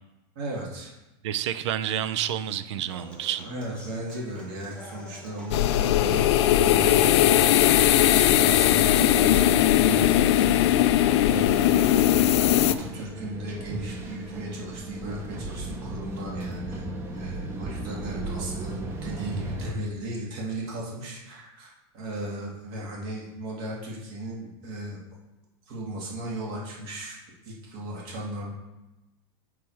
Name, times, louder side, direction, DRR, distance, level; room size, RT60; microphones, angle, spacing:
voice 1, 0.4-0.9 2.7-2.8 3.4-7.7 8.1-25.0 25.7-27.2 27.4-28.5, right 1 dB, 50° right, -3 dB, 2.0 m, -36 dB
voice 2, 1.2-3.5, right 10 dB, 85° right, 13 dB, 0.5 m, -29 dB
Human voice / Acoustic guitar, 2.9-10.9, left 1 dB, 5° left, 1.1 m, -47 dB
sound 1, 5.5-12.7, left 12 dB, 75° left, 0.4 m, -19 dB
sound 2, 11.9-19.7, right 2 dB, 15° right, 0.8 m, -36 dB
7.1 x 4.8 x 4.5 m, 1.0 s
supercardioid pair, 165°, 14 cm